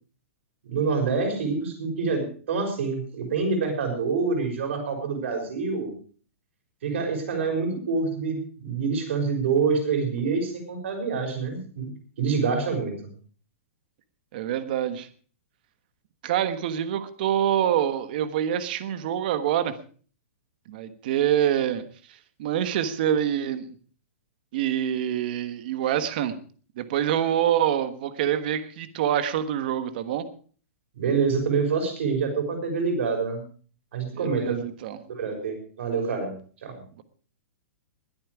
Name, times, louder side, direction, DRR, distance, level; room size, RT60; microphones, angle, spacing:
voice 1, 0.6-5.9 6.8-11.9 12.2-13.1 30.9-33.4 33.9-34.6 35.1-36.8, right 5 dB, 60° right, 4 dB, 5.9 m, -26 dB
voice 2, 14.3-15.1 16.2-19.7 20.7-21.8 22.4-23.7 24.5-26.3 26.8-30.3 34.1-35.0 37.0-37.1, right 10 dB, 40° right, 12 dB, 1.3 m, -26 dB
21.0 x 8.8 x 4.8 m, 0.42 s
hypercardioid pair, 175°, 7 cm